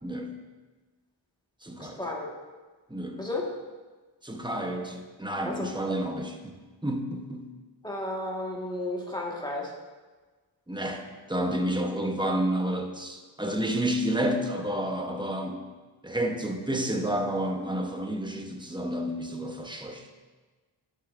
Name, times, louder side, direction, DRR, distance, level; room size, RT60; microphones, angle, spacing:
voice 1, 0.0-0.3 1.6-2.0 2.9-3.3 4.2-6.6 6.8-7.5 10.7-15.6 16.0-20.1, right 1 dB, 10° right, 3 dB, 0.9 m, -30 dB
voice 2, 1.8-2.3 3.2-3.5 5.4-5.7 7.8-9.7, left 1 dB, 10° left, -3 dB, 1.7 m, -33 dB
11.5 x 6.7 x 2.6 m, 1.3 s
wide cardioid pair, 50°, 46 cm